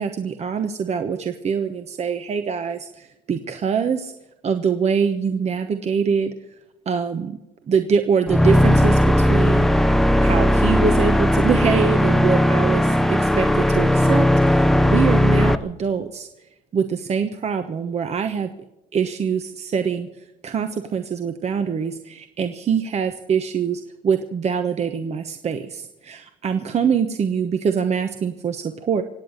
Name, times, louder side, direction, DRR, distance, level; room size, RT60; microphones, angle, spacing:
voice 1, 0.0-4.1 4.4-6.3 6.9-7.4 7.7-9.9 10.2-12.8 13.1-16.3 16.7-18.5 18.9-20.1 20.4-29.0, right 6 dB, 40° right, 7 dB, 1.1 m, -24 dB
sound 1, 8.3-15.6, left 1 dB, ahead, 0.7 m, -17 dB
24.5 x 8.9 x 6.5 m, 0.96 s
cardioid pair, 110°, 17 cm